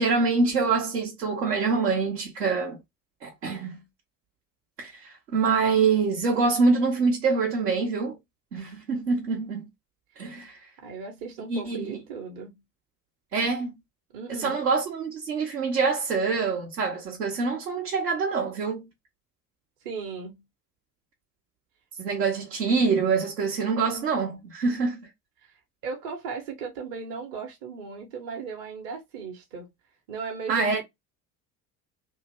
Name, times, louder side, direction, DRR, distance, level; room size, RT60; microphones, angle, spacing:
voice 1, 0.0-2.8 3.2-3.8 4.8-8.2 8.5-9.7 10.2-10.6 11.5-12.0 13.3-13.7 14.3-18.9 22.0-25.1 30.5-30.8, right 4 dB, 75° right, 1.0 m, -25 dB
voice 2, 10.8-12.6 14.1-14.6 19.8-20.5 25.4-29.7 30.1-30.8, right 5 dB, 45° right, 1.0 m, -37 dB
2.7 x 2.6 x 2.8 m
figure-of-eight pair, 60°, 48 cm